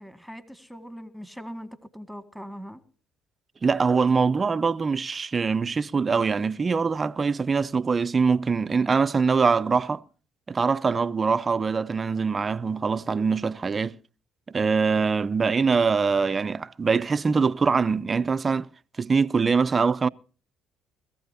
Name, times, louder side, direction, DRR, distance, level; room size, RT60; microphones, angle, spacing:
voice 1, 0.0-2.8, equal, 5° left, 1.9 m, -41 dB
voice 2, 3.6-10.0 10.5-14.0 14.5-18.7 19.0-20.1, right 5 dB, 30° right, 0.6 m, -23 dB
21.5 x 15.0 x 2.8 m
supercardioid pair, 75°, 0 cm